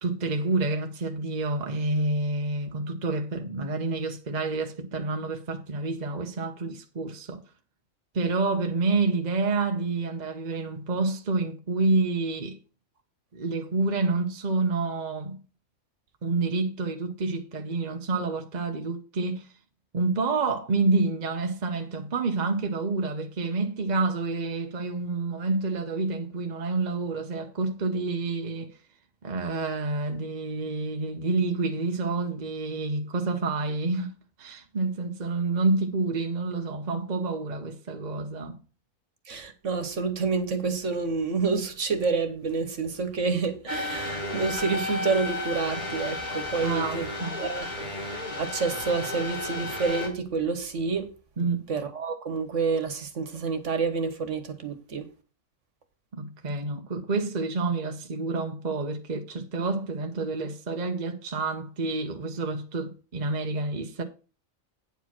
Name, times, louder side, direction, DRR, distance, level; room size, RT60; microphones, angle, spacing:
voice 1, 0.0-7.4 8.1-12.6 13.3-15.4 16.2-19.5 19.9-28.8 29.2-38.6 46.6-47.4 51.4-51.6 56.1-64.0, right 3 dB, 35° right, 1.0 m, -28 dB
voice 2, 39.3-47.1 47.4-47.7 48.4-51.1 51.7-55.1, right 4 dB, 65° right, 1.6 m, -28 dB
sound 1, 43.7-50.1, left 2 dB, 35° left, 2.5 m, -33 dB
9.3 x 4.9 x 6.0 m
omnidirectional pair, 1.4 m